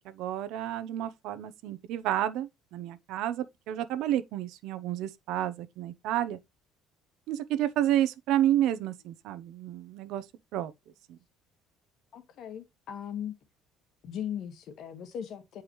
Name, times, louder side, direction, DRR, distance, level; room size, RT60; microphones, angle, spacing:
voice 1, 0.1-6.4 7.3-10.2 10.5-10.7 11.1-11.2, right 12 dB, 65° right, 0.8 m, -30 dB
voice 2, 12.1-13.3 14.0-15.6, left 9 dB, 50° left, 1.5 m, -38 dB
8.9 x 4.9 x 3.1 m
cardioid pair, 155°, 0 cm